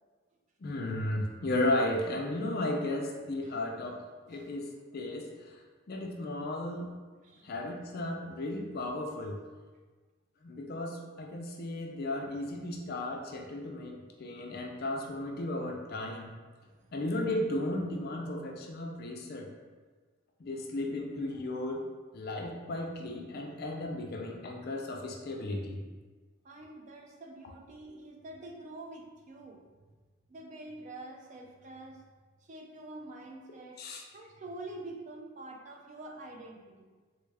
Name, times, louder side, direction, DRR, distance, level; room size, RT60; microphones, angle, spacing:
voice 1, 0.6-5.6 5.9-6.9 7.4-9.4 10.4-16.3 16.9-19.5 20.4-21.8 22.1-25.8 33.8-34.0, left 1 dB, 45° left, 1 dB, 0.4 m, -35 dB
voice 2, 16.6-16.9 26.4-29.6 30.3-32.0 32.4-33.8 34.1-36.9, right 2 dB, 35° right, 2 dB, 0.3 m, -46 dB
3.4 x 2.3 x 3.2 m, 1.4 s
head